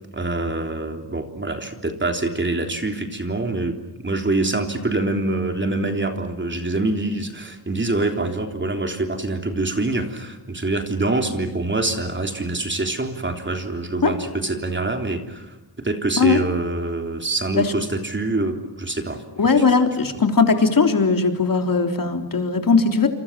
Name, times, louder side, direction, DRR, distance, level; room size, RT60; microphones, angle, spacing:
voice 1, 0.0-19.2, right 2 dB, 25° right, 5 dB, 3.5 m, -25 dB
voice 2, 19.4-23.1, left 4 dB, 50° left, 5 dB, 3.5 m, -18 dB
29.0 x 27.5 x 7.5 m, 1.0 s
wide cardioid pair, 125°, 42 cm